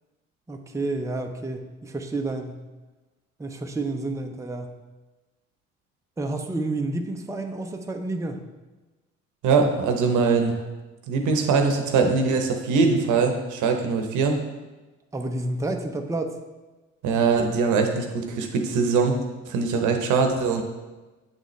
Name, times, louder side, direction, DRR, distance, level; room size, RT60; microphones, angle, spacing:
voice 1, 0.5-2.6 3.4-4.7 6.2-8.4 15.1-16.4, right 2 dB, 10° right, 4 dB, 0.6 m, -30 dB
voice 2, 9.4-10.6 11.1-14.3 17.0-19.2 19.5-20.6, right 4 dB, 70° right, 4 dB, 0.9 m, -22 dB
7.9 x 4.0 x 3.1 m, 1.2 s
supercardioid pair, 65°, 31 cm